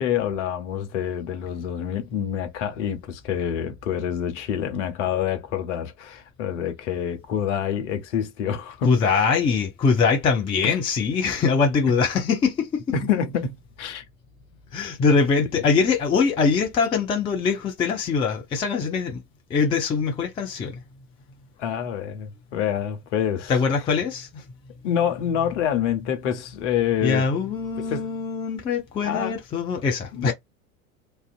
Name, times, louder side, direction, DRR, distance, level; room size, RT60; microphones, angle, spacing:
voice 1, 0.0-9.3 10.6-10.8 12.9-14.0 21.6-23.5 24.8-27.3 27.9-28.1 29.0-29.3 30.1-30.3, left 9 dB, 55° left, 0.8 m, -27 dB
voice 2, 8.8-12.9 14.7-19.2 19.5-20.8 23.5-24.4 27.0-30.3, left 5 dB, 15° left, 0.4 m, -23 dB
2.4 x 2.2 x 2.3 m
figure-of-eight pair, 80°, 42 cm